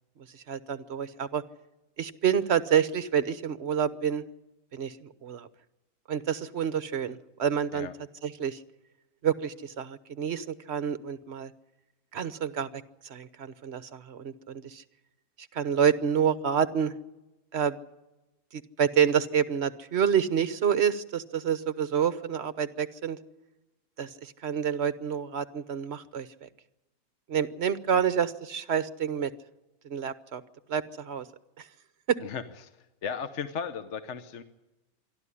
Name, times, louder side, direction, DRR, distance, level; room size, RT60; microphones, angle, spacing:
voice 1, 0.2-1.4 2.0-4.2 4.7-5.5 6.1-7.9 8.2-8.6 9.2-11.5 12.1-14.8 15.5-16.9 17.5-17.8 18.5-23.2 24.0-26.5 27.3-29.3 29.8-30.4 30.7-31.3 31.6-31.7 32.1-32.2, right 8 dB, 50° right, 13 dB, 1.1 m, -28 dB
voice 2, 33.0-34.4, left 6 dB, 55° left, 9 dB, 1.2 m, -35 dB
26.5 x 12.0 x 9.8 m, 1.0 s
omnidirectional pair, 1.6 m